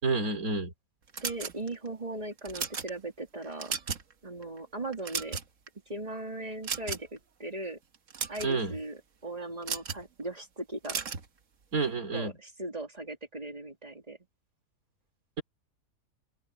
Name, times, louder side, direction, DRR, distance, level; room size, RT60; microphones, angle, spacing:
voice 1, 0.0-0.7 8.4-8.7 11.7-12.3, right 4 dB, 85° right, 3.8 m, -29 dB
sound 1, 1.1-1.9 2.4-2.9 3.4-4.1 4.4-4.6 4.9-5.7 6.6-7.2 7.9-8.5 9.6-10.0 10.8-11.3, right 6 dB, 65° right, 1.6 m, -35 dB
voice 2, 1.2-3.7 4.2-5.4 5.9-7.8 8.3-11.0 11.8-14.2, right 2 dB, 25° right, 3.1 m, -38 dB
open air
omnidirectional pair, 1.5 m